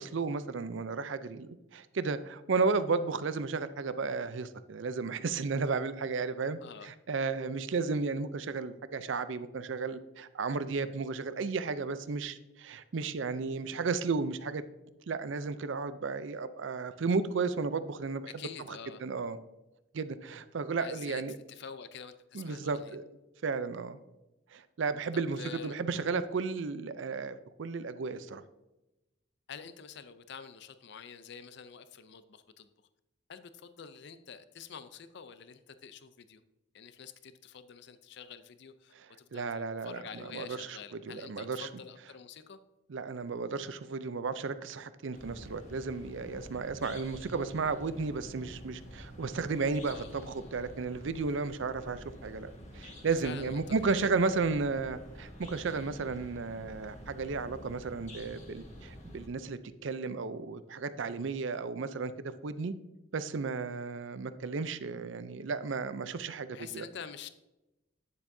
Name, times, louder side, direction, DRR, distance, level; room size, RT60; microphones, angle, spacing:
voice 1, 0.0-6.6 6.8-14.6 15.1-18.3 18.7-19.4 19.9-21.4 22.3-23.0 23.4-24.0 24.5-28.4 39.0-39.1 39.3-40.8 41.1-41.7 42.9-62.1 62.4-62.7 63.1-66.8, right 4 dB, 65° right, 13 dB, 0.5 m, -33 dB
voice 2, 18.3-19.0 20.8-21.2 21.5-23.0 25.1-25.8 29.5-32.7 33.3-36.4 36.7-42.6 49.9-50.1 53.2-54.1 66.5-67.3, left 7 dB, 55° left, 12 dB, 0.5 m, -47 dB
sound 1, 45.1-59.3, equal, 35° left, 1.4 m, -48 dB
9.6 x 7.1 x 2.7 m, 0.97 s
head